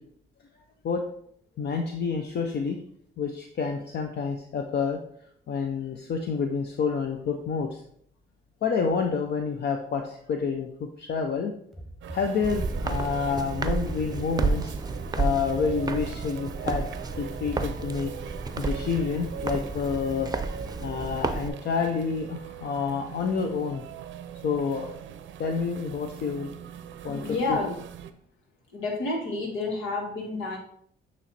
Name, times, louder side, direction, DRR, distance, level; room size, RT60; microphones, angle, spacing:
voice 1, 1.6-2.8 3.2-5.0 5.5-7.8 8.6-11.5 12.1-14.7 15.2-16.9 17.2-18.1 18.6-20.3 20.8-23.8 24.4-25.0 25.4-26.5 27.0-27.2 27.5-27.7, left 5 dB, 60° left, 4 dB, 0.7 m, -28 dB
sound 1, 11.7-12.9 13.5-14.7 15.3-16.5 17.1-18.3, right 1 dB, ahead, 1.1 m, -44 dB
sound 2, 12.0-28.1, right 9 dB, 75° right, 0.6 m, -41 dB
Walk footsteps, 12.4-21.5, right 3 dB, 20° right, 0.6 m, -31 dB
voice 2, 27.1-27.8 28.7-30.6, left 3 dB, 90° left, -1 dB, 2.0 m, -30 dB
8.6 x 3.2 x 4.2 m, 0.66 s
cardioid pair, 90°, 20 cm